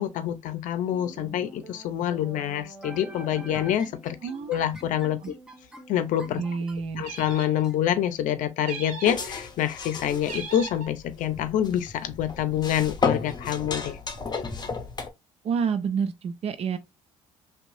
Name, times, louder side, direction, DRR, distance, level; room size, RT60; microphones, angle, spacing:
voice 1, 0.0-4.2 4.5-5.2 5.9-6.4 7.0-14.0, left 10 dB, 65° left, 0.6 m, -26 dB
sound 1, 0.9-7.7, right 1 dB, 5° right, 0.9 m, -45 dB
voice 2, 4.2-4.5 5.2-5.3 6.4-7.0 15.4-16.8, right 6 dB, 45° right, 0.6 m, -28 dB
sound 2, 7.0-7.7 8.6-9.3 10.2-10.9, right 4 dB, 70° right, 1.1 m, -38 dB
sound 3, 9.0-15.1, left 5 dB, 30° left, 0.7 m, -33 dB
2.8 x 2.2 x 2.6 m
supercardioid pair, 70°, 14 cm